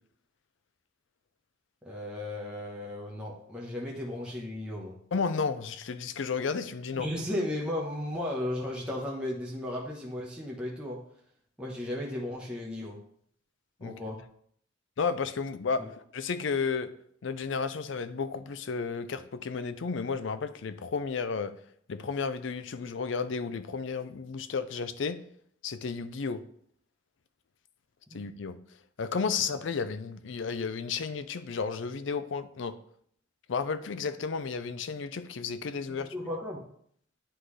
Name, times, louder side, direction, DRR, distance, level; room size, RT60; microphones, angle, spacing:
voice 1, 1.8-4.9 6.9-11.0 11.6-13.0 13.8-14.2 28.1-28.2 36.1-36.6, left 1 dB, 5° right, -4 dB, 1.0 m, -35 dB
voice 2, 5.1-7.1 13.8-13.9 15.0-16.9 17.2-21.5 21.9-25.2 25.6-26.4 28.1-28.6 29.0-32.7 33.5-36.1, left 5 dB, 70° left, 12 dB, 0.5 m, -32 dB
10.0 x 3.8 x 3.2 m, 0.64 s
head